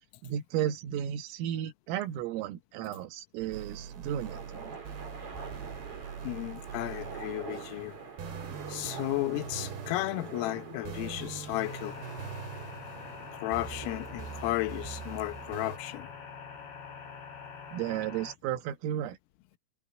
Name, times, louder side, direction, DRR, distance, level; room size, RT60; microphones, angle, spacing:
voice 1, 0.2-4.8 17.7-19.2, right 11 dB, 80° right, 4.1 m, -34 dB
sound 1, 3.4-15.8, right 7 dB, 60° right, 4.4 m, -43 dB
sound 2, 3.7-17.1, right 5 dB, 30° right, 4.5 m, -46 dB
voice 2, 6.2-8.0 8.7-12.0 13.3-16.1, left 18 dB, 80° left, 3.6 m, -34 dB
sound 3, 11.6-18.4, left 6 dB, 55° left, 8.7 m, -45 dB
omnidirectional pair, 5.9 m